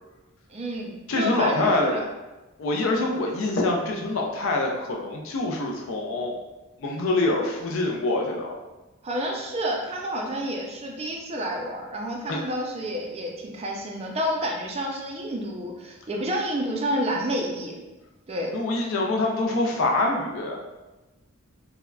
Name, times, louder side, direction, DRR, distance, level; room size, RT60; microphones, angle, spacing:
voice 1, 0.5-2.0 9.0-17.8 18.3-18.5, equal, 30° right, 0 dB, 0.3 m, -29 dB
voice 2, 1.1-2.0 2.6-6.3 6.8-8.5 12.3-12.4 18.5-20.6, left 2 dB, 65° left, 0 dB, 0.4 m, -25 dB
3.5 x 2.1 x 2.2 m, 1.1 s
head